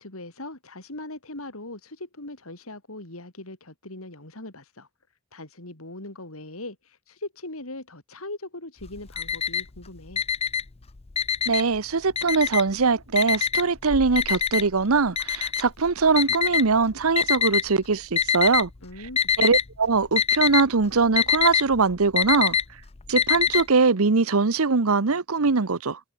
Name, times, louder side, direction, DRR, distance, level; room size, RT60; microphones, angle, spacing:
voice 1, 0.0-4.9 5.3-10.2 18.8-19.3, left 2 dB, 65° left, 4.3 m, -40 dB
Alarm, 8.8-9.8 10.1-11.8 12.2-12.8 13.2-17.6 18.2-18.8 19.0-19.7 19.9-23.6, left 7 dB, 30° left, 0.5 m, -24 dB
voice 2, 11.5-18.7 19.4-22.6 23.1-26.0, right 4 dB, 70° right, 0.9 m, -22 dB
head